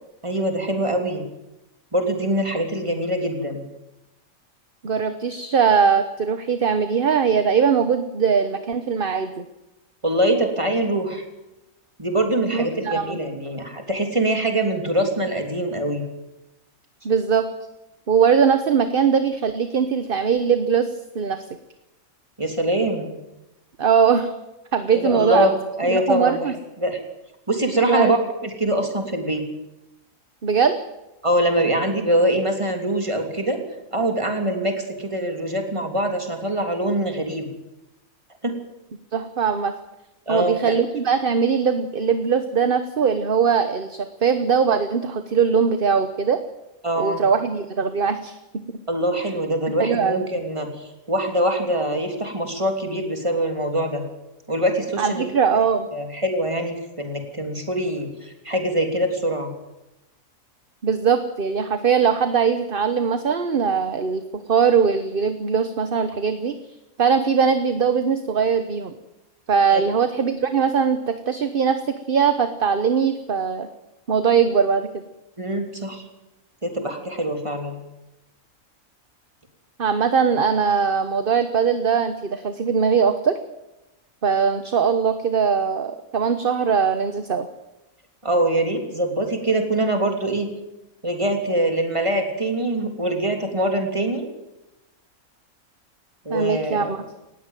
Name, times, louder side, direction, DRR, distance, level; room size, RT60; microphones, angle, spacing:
voice 1, 0.2-1.2 1.9-3.6 10.0-11.2 12.0-16.0 22.4-23.1 24.9-25.5 25.8-26.4 26.8-27.0 27.5-28.2 28.6-29.4 31.2-33.6 33.9-37.5 38.4-38.5 40.3-40.6 46.8-47.2 48.9-54.0 54.5-55.6 55.9-59.5 69.7-69.8 75.4-76.0 76.6-77.8 88.2-90.5 91.0-94.3 96.3-96.9, right 1 dB, 20° right, 4 dB, 3.3 m, -23 dB
voice 2, 4.8-9.4 12.5-13.2 17.0-17.5 18.1-21.4 23.8-24.3 24.7-25.5 25.9-26.5 27.8-28.1 30.4-30.8 39.1-39.7 40.3-46.4 47.0-48.3 49.8-50.3 55.0-55.9 60.8-66.5 67.0-68.9 69.5-73.7 74.1-75.0 79.8-83.4 84.2-87.5 96.3-97.0, right 6 dB, 40° right, 9 dB, 1.2 m, -21 dB
19.0 x 16.0 x 9.2 m, 0.96 s
omnidirectional pair, 1.5 m